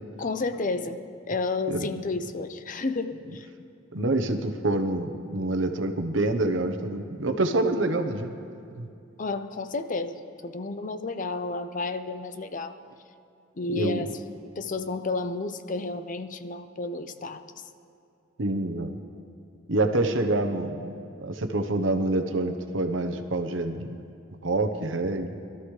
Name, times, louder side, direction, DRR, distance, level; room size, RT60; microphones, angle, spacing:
voice 1, 0.2-1.0 1.3-3.5 9.2-12.8 13.6-14.2 14.6-17.4, left 3 dB, 45° left, 10 dB, 0.6 m, -31 dB
voice 2, 1.7-2.0 3.9-8.3 8.7-8.9 13.7-14.1 18.4-18.9 19.7-20.9 21.2-24.0 24.4-25.4, right 2 dB, 85° right, 6 dB, 1.0 m, -27 dB
22.0 x 13.0 x 3.3 m, 2.5 s
head